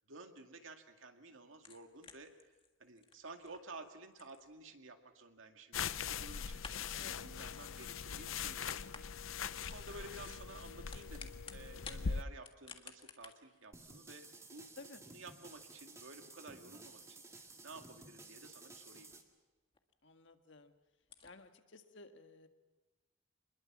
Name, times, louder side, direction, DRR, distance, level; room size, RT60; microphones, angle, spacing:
voice 1, 0.1-2.5 2.8-14.7 15.1-19.2, right 3 dB, 80° right, 5 dB, 2.2 m, -53 dB
sound 1, 1.5-5.5 5.9-7.0 8.0-8.5 8.8-9.2 9.5-9.8 10.6-12.0 12.4-19.4 19.7-19.8 20.3-20.4 20.6-20.7 21.0-21.3, left 5 dB, 25° left, 1.7 m, -56 dB
sound 2, 5.7-12.2, left 6 dB, 90° left, 0.7 m, -41 dB
voice 2, 7.0-7.3 14.8-15.0 20.0-20.7 21.2-22.5, left 3 dB, 65° left, 7 dB, 1.7 m, -55 dB
sound 3, 13.7-19.2, right 3 dB, 15° right, 2.0 m, -55 dB
26.0 x 21.0 x 7.4 m, 1.2 s
head